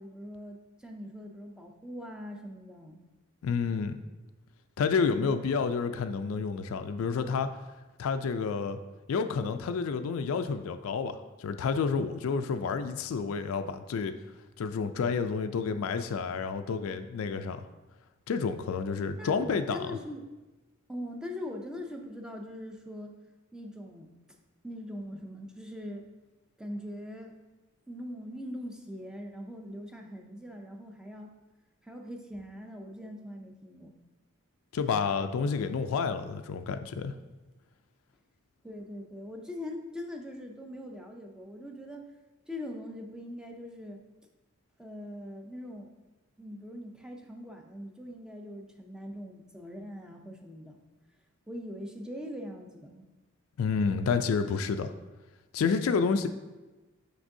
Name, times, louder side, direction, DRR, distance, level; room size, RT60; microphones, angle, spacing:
voice 1, 0.0-3.0 19.2-20.3 20.9-23.2 23.5-24.2 24.6-26.1 26.6-27.4 27.9-31.4 31.8-33.9 38.6-42.1 42.5-44.1 44.8-45.9 46.4-50.8 51.5-53.1, left 1 dB, 5° right, 2 dB, 0.4 m, -42 dB
voice 2, 3.4-4.0 4.8-7.5 8.0-8.8 9.1-14.1 14.6-17.7 18.3-19.9 34.7-37.1 53.6-54.9 55.5-56.3, left 5 dB, 65° left, 9 dB, 0.3 m, -29 dB
6.0 x 5.9 x 2.6 m, 1.1 s
head